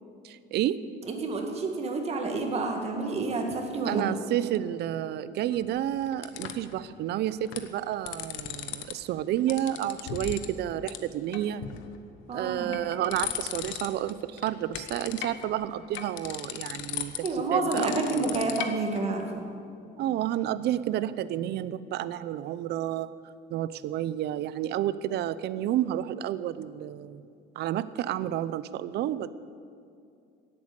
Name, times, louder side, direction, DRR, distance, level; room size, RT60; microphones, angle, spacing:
voice 1, 0.2-0.8 3.9-11.6 12.3-18.2 20.0-23.1 23.5-27.2 27.6-29.3, right 12 dB, 55° right, 15 dB, 0.6 m, -30 dB
voice 2, 1.1-4.0 12.3-12.7 17.2-19.4, right 3 dB, 30° right, 3 dB, 1.7 m, -29 dB
sound 1, 5.5-6.8 7.3-7.7 7.9-8.9 9.2-10.5 10.9-11.0 11.3-12.0 12.5-14.1 14.4-19.0, left 11 dB, 75° left, 1.1 m, -37 dB
17.0 x 8.7 x 8.2 m, 2.4 s
cardioid pair, 170°, 20 cm